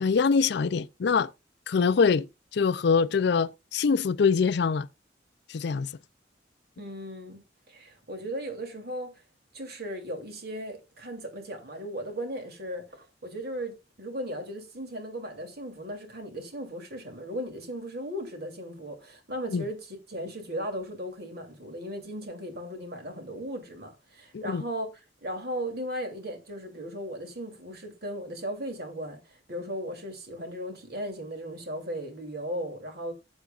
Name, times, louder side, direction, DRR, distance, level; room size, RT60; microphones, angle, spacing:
voice 1, 0.0-1.3 1.7-2.3 2.5-4.9 5.5-5.9 19.5-19.6 24.3-24.6, left 5 dB, 60° left, 0.4 m, -24 dB
voice 2, 6.8-7.4 7.7-9.2 9.5-24.9 25.2-33.1, equal, 55° right, 2.9 m, -37 dB
15.0 x 8.1 x 2.4 m
head